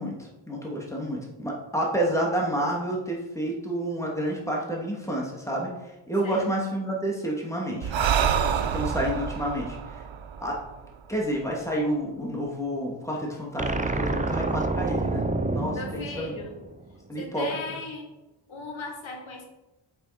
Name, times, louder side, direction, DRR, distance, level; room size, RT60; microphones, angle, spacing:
voice 1, 0.0-5.7 6.1-7.9 8.7-9.9 10.4-10.6 11.1-16.4 17.1-17.6, right 1 dB, 5° left, -2 dB, 2.6 m, -29 dB
Breathing, 7.8-11.4, right 8 dB, 75° right, 0.7 m, -27 dB
sound 1, 13.6-16.9, right 2 dB, 15° right, 0.7 m, -28 dB
voice 2, 15.7-16.6 17.2-18.1 18.5-19.5, left 3 dB, 85° left, 3 dB, 1.6 m, -37 dB
7.5 x 7.1 x 5.2 m, 1.0 s
wide cardioid pair, 80°, 46 cm